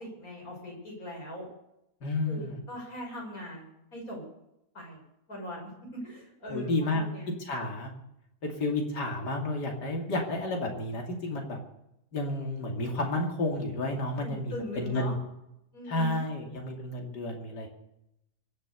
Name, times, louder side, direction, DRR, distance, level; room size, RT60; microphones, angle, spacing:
voice 1, 0.0-1.5 2.3-4.2 4.7-5.0 5.3-7.3 8.5-8.8 14.2-15.1 15.7-16.2, equal, 55° left, -2 dB, 7.2 m, -41 dB
voice 2, 2.0-2.6 6.5-7.1 7.4-7.9 8.4-11.6 12.1-15.2 15.9-17.7, left 2 dB, 85° left, 1 dB, 3.1 m, -31 dB
24.0 x 8.1 x 6.8 m, 0.84 s
omnidirectional pair, 1.8 m